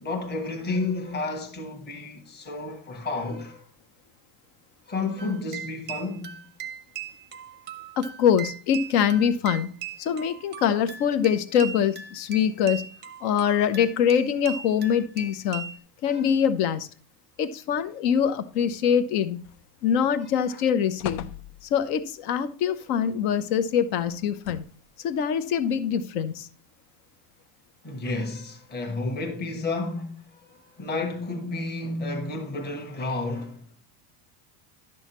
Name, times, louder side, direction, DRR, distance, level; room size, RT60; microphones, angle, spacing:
voice 1, 0.0-3.7 4.9-6.4 16.0-16.3 20.1-20.2 20.5-20.6 27.8-33.7, left 3 dB, 20° left, 1.3 m, -31 dB
sound 1, 5.2-15.8, right 7 dB, 25° right, 0.5 m, -40 dB
voice 2, 8.0-9.7 10.0-12.9 13.2-15.7 16.0-16.9 17.4-19.4 19.8-21.3 21.6-24.6 25.0-26.5, left 8 dB, 70° left, 0.9 m, -24 dB
sound 2, 19.4-20.0 20.4-20.5 21.0-22.0 24.1-24.9 25.7-25.8, left 10 dB, 85° left, 0.7 m, -39 dB
11.0 x 6.3 x 3.0 m
supercardioid pair, 140°, 47 cm